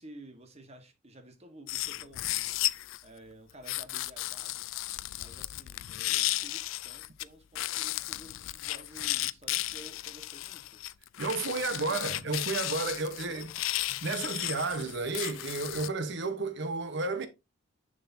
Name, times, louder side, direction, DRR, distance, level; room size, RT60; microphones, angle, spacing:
voice 1, 0.0-2.5 3.0-4.7 5.2-10.8 11.4-12.4 13.3-13.5, right 1 dB, 30° right, 1.4 m, -52 dB
sound 1, 1.7-3.0 3.7-7.2 7.5-15.9, left 17 dB, 70° left, 0.3 m, -34 dB
voice 2, 11.2-13.5 14.0-17.3, right 3 dB, 60° right, 1.0 m, -32 dB
7.0 x 6.7 x 2.7 m
head